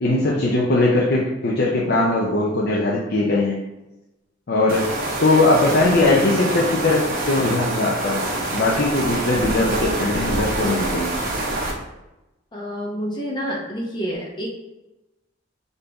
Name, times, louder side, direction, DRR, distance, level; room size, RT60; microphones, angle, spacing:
voice 1, 0.0-3.6 4.5-4.9 5.2-8.2 8.5-11.1, left 2 dB, 55° left, -4 dB, 0.6 m, -20 dB
sound 1, 4.7-11.7, right 2 dB, 50° right, 0.9 m, -26 dB
voice 2, 12.5-14.5, equal, 25° left, -2 dB, 0.9 m, -28 dB
5.2 x 2.7 x 3.4 m, 0.97 s
head